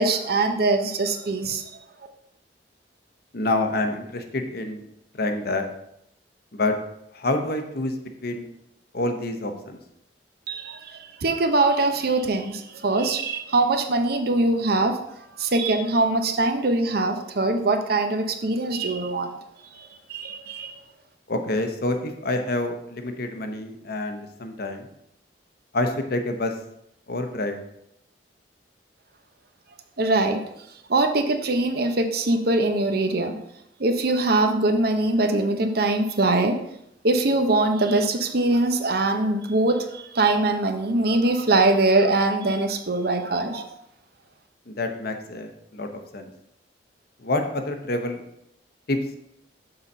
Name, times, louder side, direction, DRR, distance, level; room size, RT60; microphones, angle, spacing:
voice 1, 0.0-1.6 10.5-15.0 15.4-19.3 19.6-20.8 30.0-30.4 30.9-33.4 33.8-36.6 37.0-43.6, right 2 dB, 60° right, 7 dB, 0.8 m, -22 dB
voice 2, 3.3-4.8 5.2-5.6 6.5-6.7 7.1-7.9 8.2-8.5 8.9-9.8 21.3-24.9 25.7-26.5 27.1-27.6 44.7-45.9 46.1-46.3 47.2-48.2 48.9-49.0, left 2 dB, 55° left, 6 dB, 0.8 m, -27 dB
6.9 x 4.0 x 5.4 m, 0.78 s
head